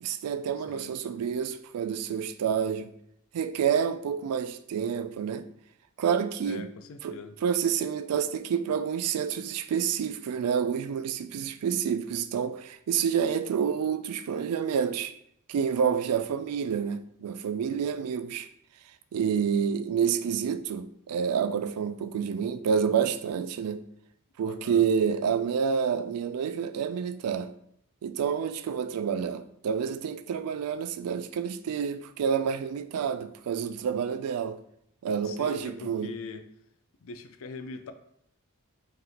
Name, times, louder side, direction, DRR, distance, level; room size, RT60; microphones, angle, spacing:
voice 1, 0.0-2.9 3.3-5.5 6.0-6.7 7.0-15.1 15.5-18.5 19.1-23.8 24.4-27.5 28.0-34.6 35.0-36.1, right 7 dB, 85° right, 0.3 m, -28 dB
voice 2, 0.6-0.9 6.4-7.4 24.4-24.8 35.2-36.5 37.0-37.9, left 4 dB, 65° left, 0.4 m, -42 dB
3.3 x 2.8 x 3.8 m
head